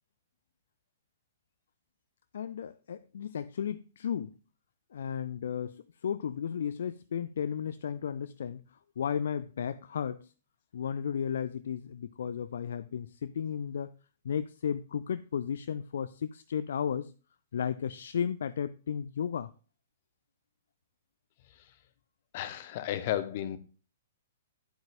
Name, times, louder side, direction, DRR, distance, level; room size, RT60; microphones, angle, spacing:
voice 1, 2.3-4.3 4.9-8.6 9.0-10.3 10.7-13.9 14.2-17.1 17.5-19.5, left 8 dB, 60° left, 0.4 m, -34 dB
voice 2, 22.3-23.6, left 12 dB, 45° left, 0.9 m, -33 dB
9.6 x 8.0 x 2.6 m
figure-of-eight pair, 115°, 0 cm